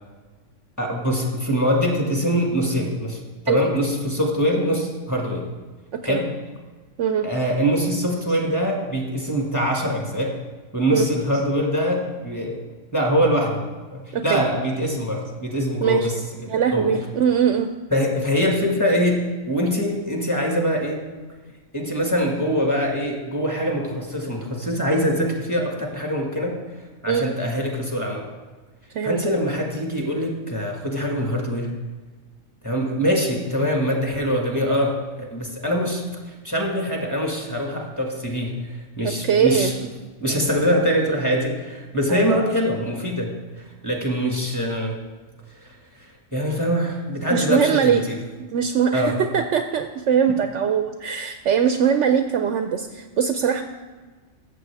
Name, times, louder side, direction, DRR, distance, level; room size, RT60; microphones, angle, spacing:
voice 1, 0.8-3.2 3.4-5.5 6.0-6.3 7.2-10.4 10.7-12.6 12.9-13.6 13.9-16.2 16.7-16.9 17.9-21.0 21.7-26.6 27.0-28.2 29.0-31.7 32.6-38.5 39.0-39.7 40.2-43.3 43.8-44.9 45.6-45.7 46.3-48.2 48.9-49.1, equal, 15° left, 0 dB, 1.6 m, -23 dB
voice 2, 14.1-14.4 15.8-16.1 16.5-17.7 27.1-27.3 28.9-29.2 39.0-39.7 42.1-42.4 47.3-48.0 48.5-53.6, right 7 dB, 70° right, 7 dB, 0.8 m, -21 dB
14.0 x 7.5 x 3.4 m, 1.3 s
omnidirectional pair, 1.4 m